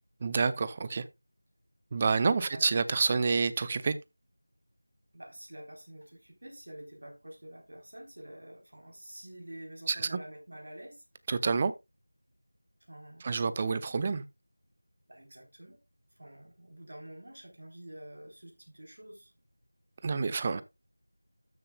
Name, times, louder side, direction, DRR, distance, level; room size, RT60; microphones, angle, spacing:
voice 1, 0.2-1.0 1.9-3.9 9.9-10.2 11.3-11.7 13.2-14.2 20.0-20.6, right 4 dB, 20° right, 0.4 m, -28 dB
voice 2, 2.3-2.7 5.1-11.0 12.8-13.3 15.1-15.8 16.2-19.3, right 1 dB, 60° right, 3.9 m, -48 dB
13.0 x 6.9 x 2.3 m
figure-of-eight pair, 175°, 0 cm